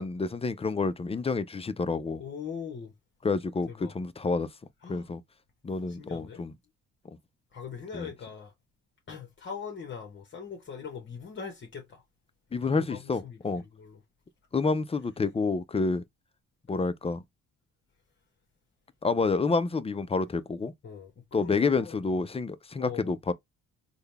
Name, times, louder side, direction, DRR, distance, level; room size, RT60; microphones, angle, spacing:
voice 1, 0.0-2.2 3.2-4.5 4.9-5.2 5.6-6.5 7.9-8.1 12.5-13.6 14.5-16.0 16.7-17.2 19.0-20.7 21.3-23.3, left 4 dB, 20° left, 0.4 m, -28 dB
voice 2, 2.2-2.9 3.7-3.9 4.8-5.1 5.9-6.4 7.5-8.5 9.1-12.0 12.6-14.0 20.8-22.2 22.8-23.2, left 6 dB, 40° left, 1.1 m, -41 dB
3.8 x 2.2 x 3.3 m
cardioid pair, 90°, 30 cm